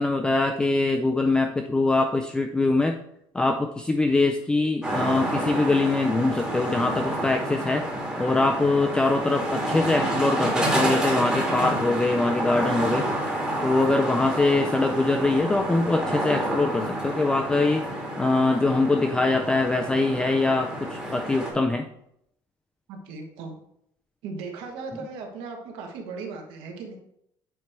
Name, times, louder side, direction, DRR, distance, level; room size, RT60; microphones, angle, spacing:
voice 1, 0.0-3.0 3.3-7.8 8.2-13.1 13.6-17.8 18.2-21.9, left 2 dB, 10° left, 5 dB, 0.3 m, -23 dB
sound 1, 4.8-21.5, right 1 dB, 10° right, 1.7 m, -29 dB
voice 2, 9.5-10.1 22.9-23.5 24.2-27.0, right 4 dB, 80° right, 2 dB, 1.5 m, -37 dB
8.7 x 3.2 x 4.4 m, 0.73 s
cardioid pair, 160°, 9 cm